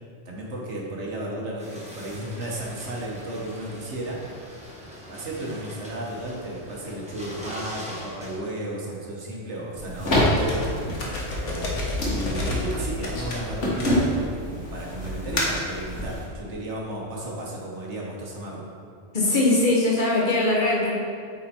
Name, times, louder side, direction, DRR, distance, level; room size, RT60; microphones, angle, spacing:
voice 1, 0.2-4.2 5.1-10.7 11.4-18.6, right 1 dB, 75° right, -3 dB, 1.6 m, -33 dB
sound 1, 1.6-8.4, equal, 5° right, 1.3 m, -42 dB
sound 2, 9.8-16.3, left 1 dB, 60° left, 1.8 m, -28 dB
sound 3, 10.2-14.5 15.0-15.7, left 2 dB, 90° left, 1.6 m, -30 dB
voice 2, 19.1-20.9, left 2 dB, 45° left, -3 dB, 1.2 m, -21 dB
8.4 x 4.4 x 4.4 m, 2.3 s
omnidirectional pair, 1.2 m